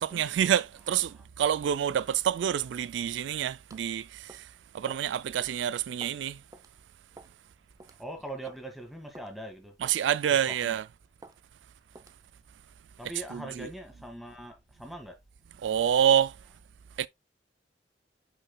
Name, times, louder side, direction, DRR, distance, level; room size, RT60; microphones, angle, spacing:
voice 1, 0.0-4.4 4.7-6.4 9.8-10.9 13.3-13.7 15.6-16.4 17.0-17.1, right 9 dB, 90° right, 0.3 m, -27 dB
sound 1, 3.7-3.9 4.3-4.5 4.9-5.1 5.4-5.5 6.0-6.2 6.5-6.7 7.2-7.4 7.8-8.0 8.5-8.6 9.2-9.3 9.8-10.0 10.5-10.8 11.2-11.4 12.0-12.2, right 2 dB, 20° right, 0.7 m, -50 dB
voice 2, 8.0-9.7 10.6-10.7 13.0-15.2, right 1 dB, ahead, 1.7 m, -41 dB
8.5 x 5.5 x 2.2 m
head